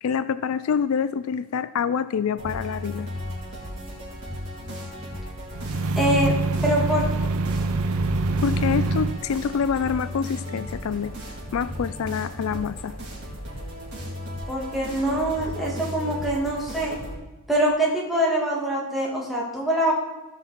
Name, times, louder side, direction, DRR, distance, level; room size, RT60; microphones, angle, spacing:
voice 1, 0.0-3.1 8.4-11.1 11.5-12.9, left 6 dB, 75° left, 14 dB, 0.4 m, -26 dB
sound 1, 2.4-17.2, left 1 dB, 55° right, 4.0 m, -35 dB
sound 2, 5.5-9.2, right 3 dB, 85° right, 0.6 m, -25 dB
voice 2, 6.0-6.3 6.6-7.2 14.5-17.0 17.5-19.9, right 1 dB, ahead, -4 dB, 2.3 m, -24 dB
16.0 x 6.0 x 4.2 m, 1.1 s
head